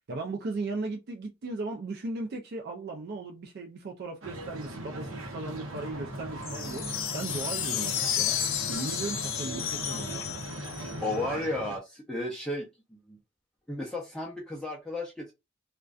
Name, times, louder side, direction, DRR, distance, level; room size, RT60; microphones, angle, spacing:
voice 1, 0.1-6.8 7.1-8.4 8.7-10.3, right 3 dB, 55° right, 0.4 m, -36 dB
sound 1, 4.2-11.8, right 1 dB, 80° right, 0.7 m, -39 dB
sound 2, 6.4-11.2, left 9 dB, 90° left, 0.5 m, -32 dB
voice 2, 11.0-12.7 13.1-13.2 13.7-15.3, left 1 dB, 5° left, 0.5 m, -33 dB
2.4 x 2.2 x 2.3 m
head